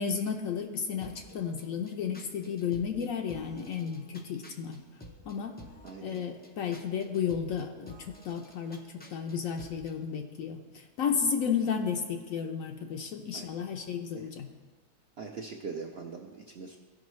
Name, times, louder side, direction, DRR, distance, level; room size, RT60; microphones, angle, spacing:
voice 1, 0.0-4.8 5.2-5.6 6.0-8.8 9.1-14.5, left 7 dB, 65° left, 4 dB, 0.9 m, -33 dB
sound 1, 1.0-10.0, equal, 15° left, 0.3 m, -52 dB
voice 2, 5.8-6.4 13.3-13.5 14.2-14.3 15.2-16.8, right 5 dB, 55° right, 0 dB, 0.7 m, -42 dB
15.5 x 5.3 x 3.1 m, 1.4 s
omnidirectional pair, 1.7 m